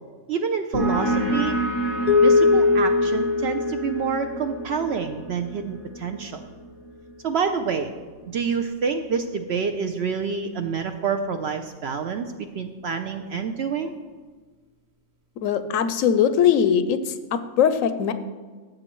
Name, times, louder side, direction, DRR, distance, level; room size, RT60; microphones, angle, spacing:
voice 1, 0.3-1.6 2.2-6.4 7.2-7.9 8.3-12.3 12.5-13.9, right 6 dB, 65° right, 7 dB, 0.7 m, -27 dB
sound 1, 0.7-8.0, right 1 dB, 40° right, 1.2 m, -29 dB
sound 2, 2.1-4.6, left 4 dB, 90° left, 0.3 m, -20 dB
voice 2, 15.4-18.1, left 8 dB, 75° left, 11 dB, 0.9 m, -21 dB
13.0 x 7.7 x 3.0 m, 1.4 s
omnidirectional pair, 1.5 m